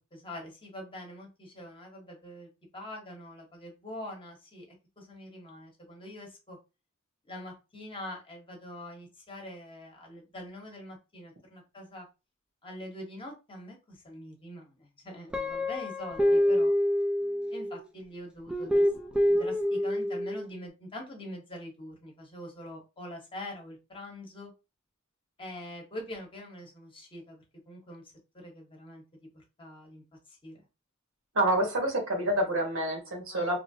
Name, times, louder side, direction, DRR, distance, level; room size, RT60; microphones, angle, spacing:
voice 1, 0.1-4.7 5.0-6.6 7.3-12.1 12.6-16.7 17.5-18.9 19.1-24.5 25.4-28.0 28.3-30.6 33.3-33.6, left 1 dB, 25° left, 0 dB, 0.9 m, -44 dB
Guitar, 15.3-17.8 18.5-20.4, equal, 5° right, 0.3 m, -26 dB
voice 2, 31.3-33.6, right 1 dB, 80° right, 2 dB, 1.2 m, -27 dB
3.0 x 2.5 x 2.6 m, 0.28 s
head